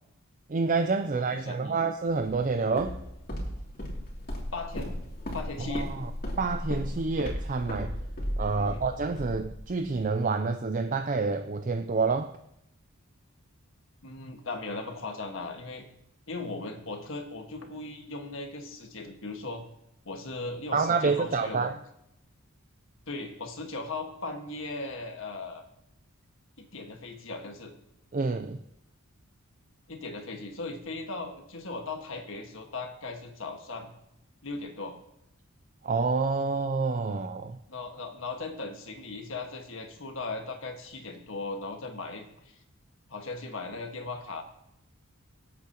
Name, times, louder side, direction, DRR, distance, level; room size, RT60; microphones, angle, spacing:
voice 1, 0.5-3.0 5.6-6.1 6.4-7.9 8.4-12.3 20.7-21.7 28.1-28.6 35.8-37.6, right 4 dB, 35° right, 8 dB, 0.4 m, -28 dB
voice 2, 1.1-1.8 4.5-4.9 5.3-5.9 8.5-8.8 14.0-15.8 16.3-19.6 20.0-21.7 23.1-25.6 26.6-27.7 29.9-33.9 34.4-35.0 37.7-42.6 43.1-44.4, left 3 dB, 60° left, 3 dB, 1.6 m, -38 dB
Walk footsteps, 2.1-10.0, equal, 40° left, 2.8 m, -36 dB
24.0 x 8.4 x 2.9 m, 0.80 s
head